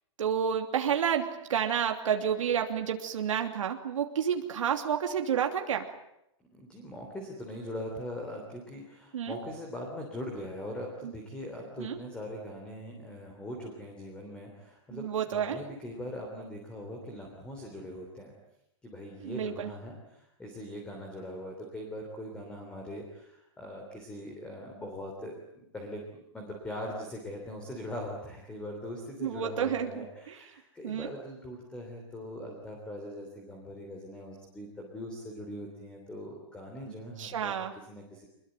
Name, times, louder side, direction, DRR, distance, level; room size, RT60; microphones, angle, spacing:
voice 1, 0.2-5.9 9.1-9.4 11.0-11.1 11.8-12.0 14.9-15.6 19.2-19.7 29.2-30.4 30.8-31.1 37.2-37.7, right 8 dB, 80° right, 4 dB, 3.0 m, -30 dB
voice 2, 6.5-18.3 18.8-37.5 37.9-38.3, left 1 dB, 5° left, 1 dB, 3.3 m, -41 dB
26.0 x 21.5 x 9.1 m, 0.80 s
supercardioid pair, 175°, 16 cm